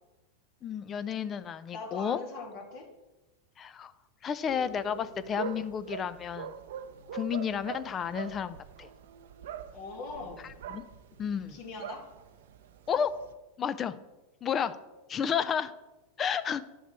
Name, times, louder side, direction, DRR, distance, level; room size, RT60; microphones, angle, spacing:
voice 1, 0.6-2.2 3.6-3.9 4.2-6.5 7.1-8.9 10.4-10.8 11.2-11.6 12.9-13.1 13.6-13.9 14.4-14.8 15.1-15.7 16.2-16.6, left 8 dB, 30° left, 14 dB, 0.6 m, -31 dB
voice 2, 1.7-2.9 9.7-10.4 11.5-12.0, left 3 dB, 60° left, 2 dB, 2.2 m, -41 dB
sound 1, 4.5-13.3, right 7 dB, 75° right, 0.7 m, -43 dB
10.5 x 6.5 x 4.5 m, 1.0 s
hypercardioid pair, 105°, 0 cm